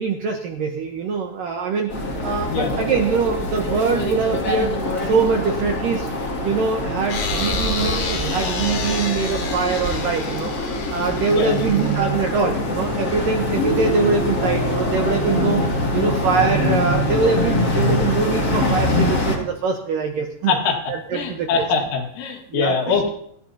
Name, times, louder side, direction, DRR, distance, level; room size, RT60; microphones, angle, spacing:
voice 1, 0.0-1.9 2.2-6.1 6.4-10.5 10.9-20.5 20.9-21.5 22.5-23.0, right 5 dB, 85° right, 2 dB, 1.9 m, -23 dB
sound 1, 1.9-19.4, left 1 dB, 35° left, 1.5 m, -24 dB
sound 2, 7.1-12.4, left 4 dB, 60° left, 4.0 m, -29 dB
voice 2, 11.3-11.7 20.5-20.8 21.1-23.1, left 5 dB, 85° left, 2 dB, 4.4 m, -23 dB
28.0 x 10.5 x 2.8 m, 0.69 s
omnidirectional pair, 5.4 m